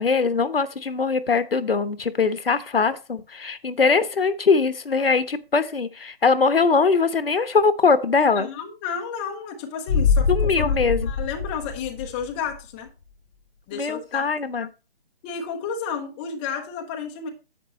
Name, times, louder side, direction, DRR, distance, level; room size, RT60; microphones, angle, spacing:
voice 1, 0.0-8.5 10.3-11.1 13.7-14.7, left 4 dB, 70° left, 12 dB, 1.1 m, -21 dB
voice 2, 8.3-10.8 11.0-12.9 13.7-14.2 15.2-17.3, left 6 dB, 10° left, 3 dB, 0.7 m, -32 dB
sound 1, 9.9-12.6 12.9-13.0, left 5 dB, 40° left, 1.0 m, -24 dB
10.0 x 8.2 x 3.0 m, 0.31 s
figure-of-eight pair, 145°, 30 cm